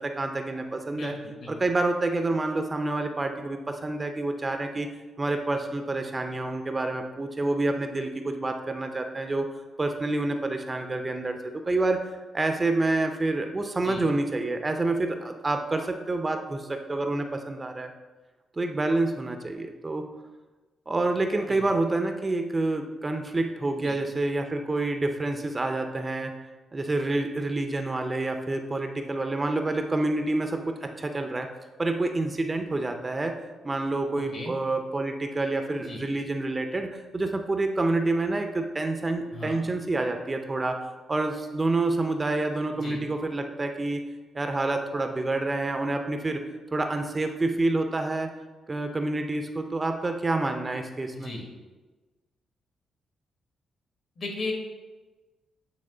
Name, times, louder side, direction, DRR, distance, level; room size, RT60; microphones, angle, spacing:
voice 1, 0.0-1.1 1.5-4.9 5.2-9.5 9.8-12.0 12.3-17.9 18.6-20.1 20.9-26.3 26.7-31.5 31.8-33.4 33.6-44.0 44.3-46.4 46.7-48.3 48.7-51.3, right 2 dB, 25° right, 5 dB, 0.5 m, -28 dB
voice 2, 0.9-1.5 13.8-14.1 21.5-21.6 23.7-24.0 34.2-34.5 35.8-36.0 39.3-39.6 42.7-43.0 51.1-51.4 54.2-54.5, left 2 dB, 50° left, 1 dB, 1.5 m, -36 dB
8.6 x 3.1 x 3.8 m, 1.2 s
cardioid pair, 100°, 0 cm